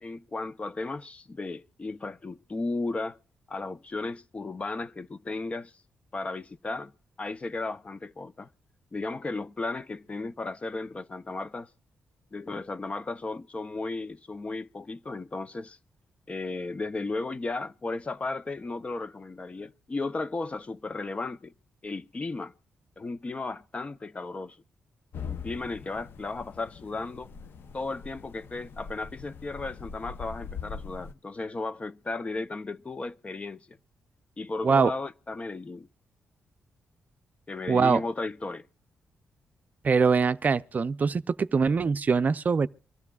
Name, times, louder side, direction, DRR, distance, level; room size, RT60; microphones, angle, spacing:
voice 1, 0.0-3.2 3.5-5.7 6.1-6.9 7.2-8.5 8.9-11.7 12.3-15.8 16.3-21.5 21.8-22.5 23.0-24.6 25.2-27.3 27.7-33.8 34.4-35.9 37.5-38.7, left 3 dB, 30° left, 0.6 m, -35 dB
sound 1, 25.1-31.1, left 6 dB, 65° left, 0.7 m, -42 dB
voice 2, 37.7-38.0 39.8-42.7, right 5 dB, 45° right, 0.5 m, -23 dB
24.5 x 13.0 x 2.4 m
cardioid pair, 75°, 4 cm